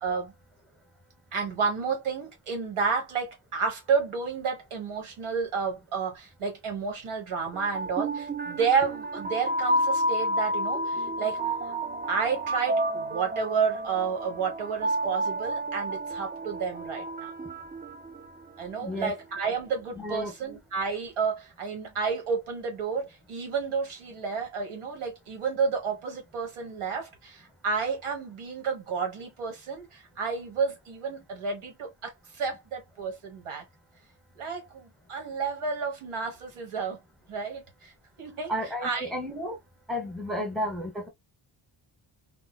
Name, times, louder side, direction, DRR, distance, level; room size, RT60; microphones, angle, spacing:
voice 1, 0.0-0.3 1.3-11.7 12.1-17.3 18.6-33.6 34.3-37.0 37.3-37.9 38.2-38.5 38.8-39.1, right 5 dB, 75° right, 1.4 m, -31 dB
sound 1, 7.5-18.6, right 1 dB, 20° right, 0.4 m, -31 dB
voice 2, 18.8-19.2 20.0-20.3 38.5-39.6 39.9-41.1, equal, ahead, 0.7 m, -32 dB
3.7 x 2.0 x 2.2 m
wide cardioid pair, 110°, 50 cm